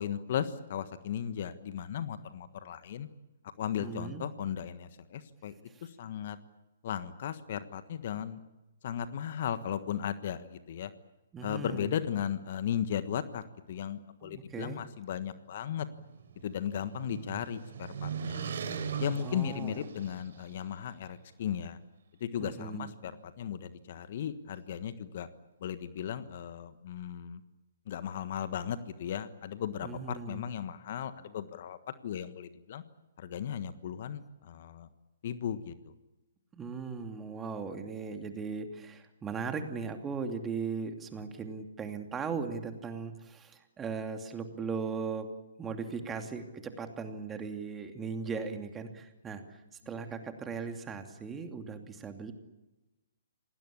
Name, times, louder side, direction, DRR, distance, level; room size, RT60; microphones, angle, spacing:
voice 1, 0.0-3.1 3.6-5.5 5.8-6.4 6.8-8.4 8.8-10.9 11.4-13.4 13.7-15.9 16.4-18.4 19.0-21.8 22.2-25.3 25.6-27.4 27.9-32.8 33.2-34.9 35.2-35.7, left 9 dB, 50° left, 12 dB, 1.4 m, -36 dB
voice 2, 3.8-4.3 5.7-5.9 11.3-12.0 14.2-14.8 19.2-19.8 22.4-22.9 29.8-30.5 36.5-45.3 45.6-52.3, right 5 dB, 15° right, 6 dB, 2.7 m, -38 dB
sound 1, 15.7-20.5, right 6 dB, 60° right, 3.5 m, -39 dB
27.5 x 19.5 x 8.6 m, 1.0 s
figure-of-eight pair, 125°, 0 cm